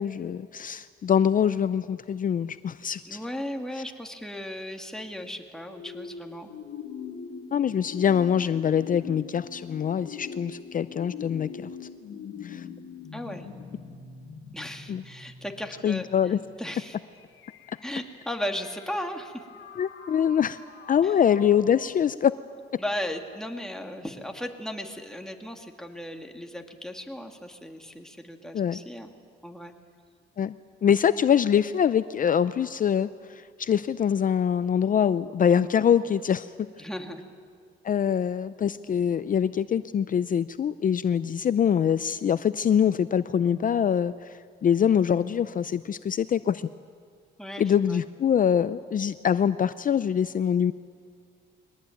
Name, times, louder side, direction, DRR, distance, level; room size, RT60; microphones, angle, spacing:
voice 1, 0.0-3.2 7.5-11.5 12.4-12.6 14.9-15.0 15.8-16.4 19.8-20.6 20.9-22.3 28.5-28.8 30.4-30.5 30.8-36.5 37.8-46.7 47.6-50.7, left 8 dB, 45° left, 14 dB, 0.5 m, -24 dB
voice 2, 3.1-6.5 13.1-13.5 14.5-16.1 16.6-17.0 17.8-19.4 21.0-21.1 22.8-29.1 29.4-29.7 36.8-37.2 47.4-48.0, equal, 5° left, 3 dB, 2.4 m, -36 dB
sound 1, 5.7-21.9, left 6 dB, 75° left, 2.3 m, -43 dB
23.0 x 18.5 x 9.3 m, 2.1 s
cardioid pair, 90°, 20 cm